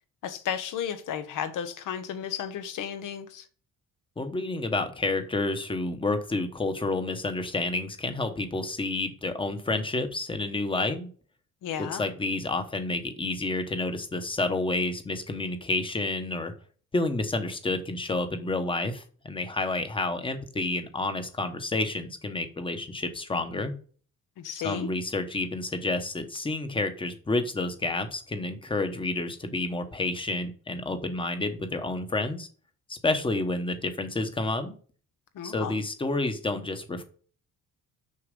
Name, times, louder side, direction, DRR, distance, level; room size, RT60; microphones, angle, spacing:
voice 1, 0.2-3.5 11.6-12.0 24.4-24.9 35.3-35.7, left 8 dB, 70° left, 1.1 m, -33 dB
voice 2, 4.2-11.1 11.8-16.5 16.9-23.7 24.6-32.5 32.9-34.8 35.4-37.0, left 2 dB, 15° left, 1.0 m, -29 dB
6.7 x 6.1 x 5.3 m
cardioid pair, 155°, 32 cm